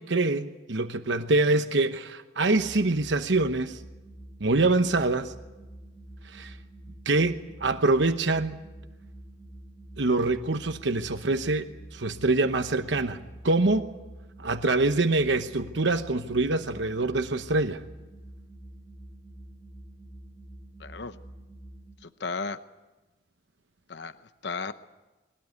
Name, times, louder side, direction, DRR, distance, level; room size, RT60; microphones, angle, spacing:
voice 1, 0.0-3.8 4.4-5.3 6.2-6.6 7.1-8.6 10.0-13.9 14.4-17.8, right 2 dB, 75° right, 1.0 m, -25 dB
sound 1, 2.4-22.0, right 1 dB, 10° left, 2.9 m, -47 dB
voice 2, 20.8-21.2 22.0-22.6 23.9-24.1 24.4-24.7, left 4 dB, 70° left, 0.8 m, -34 dB
22.0 x 18.0 x 9.5 m
head